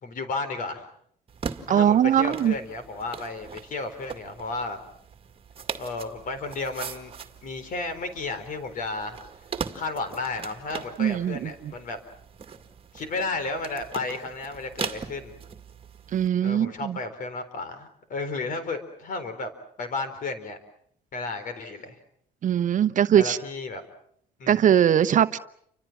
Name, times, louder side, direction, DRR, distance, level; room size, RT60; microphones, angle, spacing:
voice 1, 0.0-0.9 1.7-4.8 5.8-7.1 7.4-9.2 9.7-12.0 12.9-15.4 16.4-19.5 19.8-20.6 21.1-22.0 23.1-23.8 24.4-24.7, left 3 dB, 50° left, 11 dB, 4.2 m, -33 dB
sound 1, 1.3-16.3, right 6 dB, 35° right, 2.1 m, -40 dB
voice 2, 1.7-2.5 11.0-11.7 16.1-17.0 22.4-23.4 24.5-25.4, right 9 dB, 50° right, 12 dB, 0.9 m, -21 dB
30.0 x 25.0 x 6.1 m, 0.67 s
cardioid pair, 110°, 17 cm